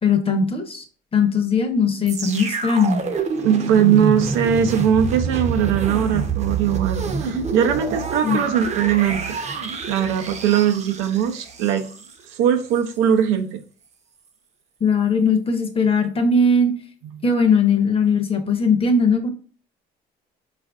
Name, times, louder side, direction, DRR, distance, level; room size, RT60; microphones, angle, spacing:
voice 1, 0.0-0.8 1.1-3.0 8.2-8.4 14.8-16.7 17.2-19.3, left 4 dB, 30° left, 6 dB, 0.7 m, -19 dB
sound 1, 2.1-12.1 12.7-12.8, right 5 dB, 35° right, 0.6 m, -27 dB
voice 2, 3.4-11.8 12.4-13.6 17.1-17.2, right 9 dB, 85° right, 7 dB, 0.5 m, -20 dB
4.2 x 2.5 x 2.4 m, 0.40 s
supercardioid pair, 85°, 20 cm